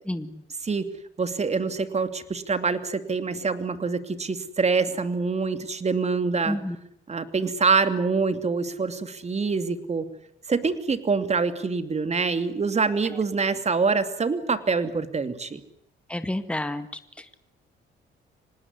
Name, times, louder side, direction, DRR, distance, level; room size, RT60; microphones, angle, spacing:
voice 1, 0.1-0.4 6.5-6.8 16.1-16.9 17.2-17.4, left 1 dB, 5° left, 10 dB, 1.9 m, -30 dB
voice 2, 1.2-6.6 7.1-10.1 10.5-15.6, right 4 dB, 35° right, 11 dB, 2.8 m, -25 dB
26.0 x 19.5 x 9.8 m, 0.75 s
cardioid pair, 90°, 20 cm